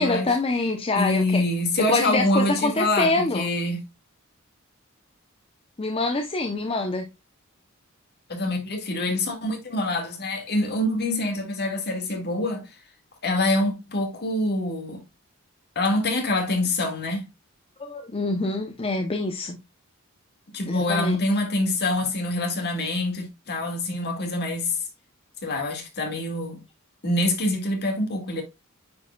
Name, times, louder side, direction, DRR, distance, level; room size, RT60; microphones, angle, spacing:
voice 1, 0.0-1.4 1.8-3.4 5.8-7.0 17.8-19.6 20.7-21.2, left 2 dB, 25° left, 0.7 m, -25 dB
voice 2, 1.0-3.8 8.3-12.7 13.2-15.0 15.8-17.2 20.5-24.8 25.4-26.6 27.0-28.4, left 1 dB, 50° left, 1.9 m, -25 dB
9.4 x 4.7 x 2.2 m
head